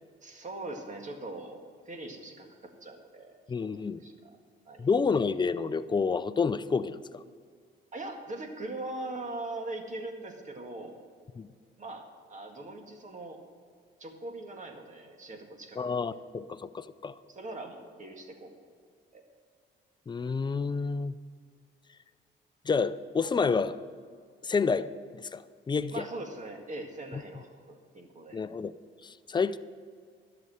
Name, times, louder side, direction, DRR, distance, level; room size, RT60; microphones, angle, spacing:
voice 1, 0.2-3.7 4.0-4.4 4.7-4.9 7.9-11.0 11.8-13.4 14.0-16.0 17.3-18.5 19.1-19.2 25.9-28.4, right 2 dB, 40° right, 3 dB, 1.9 m, -41 dB
voice 2, 3.5-4.0 4.8-7.2 11.4-11.5 15.8-17.2 20.1-21.2 22.7-23.8 24.4-26.0 28.3-28.7 29.0-29.6, left 5 dB, 20° left, 13 dB, 0.5 m, -29 dB
11.5 x 6.9 x 7.8 m, 2.1 s
cardioid pair, 90°, 20 cm